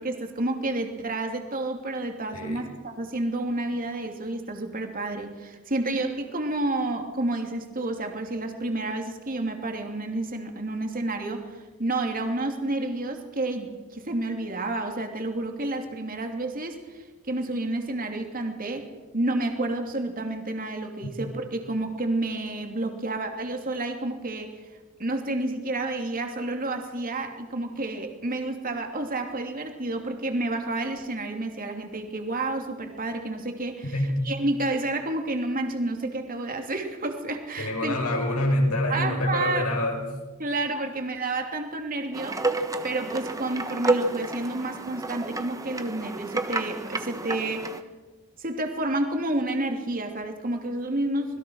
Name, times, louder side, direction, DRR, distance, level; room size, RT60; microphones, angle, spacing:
voice 1, 0.0-18.9 19.1-24.5 25.0-33.9 34.2-37.9 38.9-39.6 40.4-42.4 42.8-47.7 48.4-51.4, right 2 dB, 40° right, 4 dB, 3.0 m, -30 dB
voice 2, 2.3-2.6 33.9-34.1 37.6-40.0, left 1 dB, 85° left, 1 dB, 7.2 m, -26 dB
sound 1, 42.1-47.8, right 2 dB, 15° right, 1.2 m, -30 dB
26.5 x 21.0 x 6.4 m, 1.3 s
head